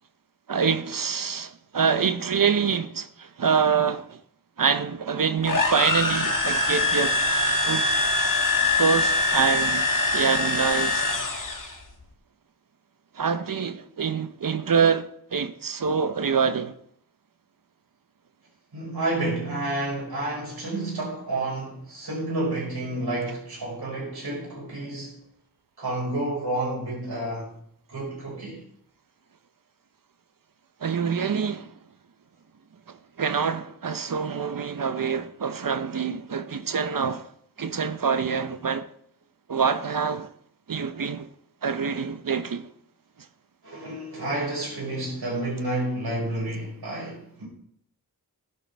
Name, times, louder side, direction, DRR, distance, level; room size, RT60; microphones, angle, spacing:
voice 1, 0.5-4.2 4.6-7.2 7.6-7.9 8.8-9.9 10.1-11.1 13.1-16.7 30.8-31.7 32.9-37.3 37.6-38.9 39.5-40.3 40.7-41.3 41.6-42.7, right 6 dB, 60° right, 0.8 m, -25 dB
sound 1, 5.4-11.8, left 2 dB, 55° left, 2.2 m, -23 dB
voice 2, 18.7-25.2 25.8-27.5 27.9-28.6 43.6-47.5, right 2 dB, 85° right, 5.3 m, -30 dB
13.0 x 11.0 x 3.5 m
cardioid pair, 45°, 37 cm